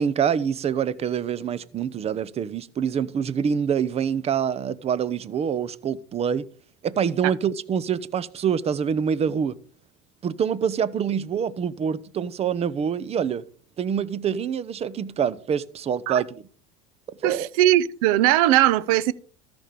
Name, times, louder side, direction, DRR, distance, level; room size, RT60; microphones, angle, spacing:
voice 1, 0.0-6.5 6.8-9.6 10.2-13.4 13.8-16.4 17.2-17.5, right 7 dB, 35° right, 0.8 m, -26 dB
voice 2, 17.2-19.1, right 14 dB, 75° right, 0.7 m, -19 dB
13.5 x 5.2 x 6.8 m
supercardioid pair, 100°, 19 cm